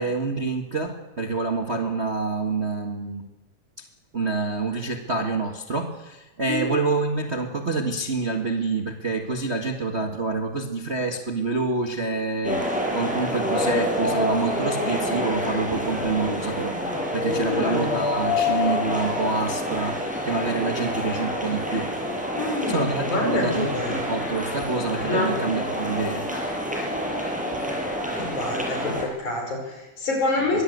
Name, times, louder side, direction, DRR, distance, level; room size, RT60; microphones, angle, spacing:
voice 1, 0.0-3.2 3.8-3.9 4.1-21.9 22.7-26.3 30.5-30.6, right 3 dB, 30° right, 2 dB, 1.2 m, -27 dB
sound 1, 12.4-29.1, left 1 dB, ahead, 5.9 m, -27 dB
voice 2, 17.2-18.0 22.3-24.0 25.1-25.3 27.1-27.2 28.1-30.6, left 2 dB, 70° left, 2 dB, 6.6 m, -27 dB
23.0 x 17.5 x 8.0 m, 1.1 s
omnidirectional pair, 3.6 m